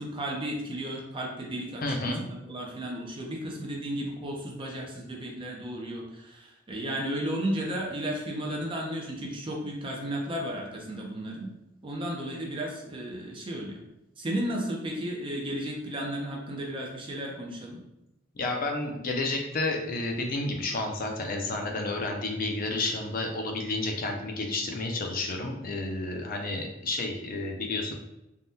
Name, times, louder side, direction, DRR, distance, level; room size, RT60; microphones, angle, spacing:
voice 1, 0.0-2.1 2.4-11.5 11.8-13.8 14.2-17.8, right 1 dB, 25° right, -1 dB, 0.5 m, -34 dB
voice 2, 1.8-2.2 18.3-27.9, left 2 dB, 45° left, 2 dB, 0.5 m, -31 dB
3.5 x 2.2 x 2.7 m, 0.91 s
head